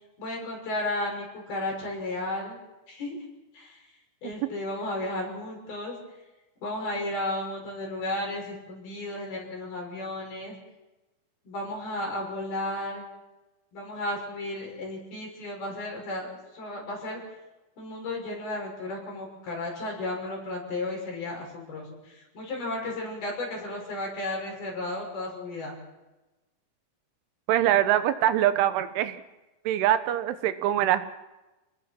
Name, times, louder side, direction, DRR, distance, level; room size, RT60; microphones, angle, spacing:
voice 1, 0.2-2.6 2.9-3.2 3.5-3.8 4.2-5.9 6.6-10.6 11.4-13.0 13.7-17.2 17.8-25.8, left 1 dB, 55° left, -1 dB, 8.3 m, -34 dB
voice 2, 27.5-29.2 29.7-31.1, right 12 dB, 90° right, 11 dB, 3.6 m, -23 dB
30.0 x 19.5 x 6.0 m, 1.1 s
omnidirectional pair, 5.4 m